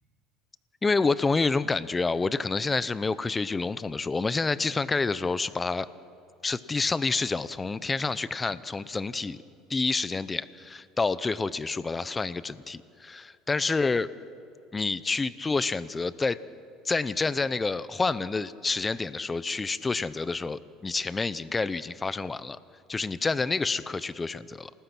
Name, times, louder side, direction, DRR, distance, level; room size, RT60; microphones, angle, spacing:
voice 1, 0.8-5.9 6.4-9.4 9.7-14.1 14.7-16.4 16.8-22.6 22.9-24.7, left 4 dB, 15° left, 17 dB, 0.7 m, -28 dB
28.0 x 19.0 x 6.1 m, 2.5 s
supercardioid pair, 120°, 0 cm